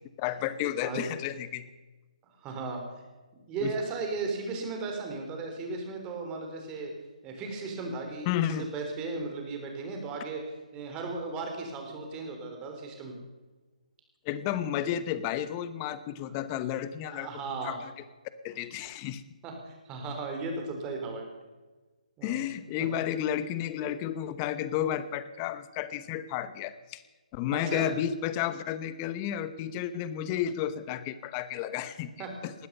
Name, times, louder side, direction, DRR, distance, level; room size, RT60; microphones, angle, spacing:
voice 1, 0.2-1.7 3.6-3.7 8.3-8.7 14.2-17.3 17.6-17.9 18.4-19.2 22.2-27.0 27.3-32.5, left 10 dB, 25° left, 14 dB, 0.9 m, -32 dB
voice 2, 2.4-2.8 3.5-6.9 7.2-10.4 10.7-13.2 17.1-17.8 19.4-21.3 22.2-22.5 27.5-27.9 32.2-32.3, right 3 dB, 20° right, 3 dB, 3.9 m, -36 dB
20.0 x 13.0 x 5.5 m, 1.2 s
figure-of-eight pair, 145°, 4 cm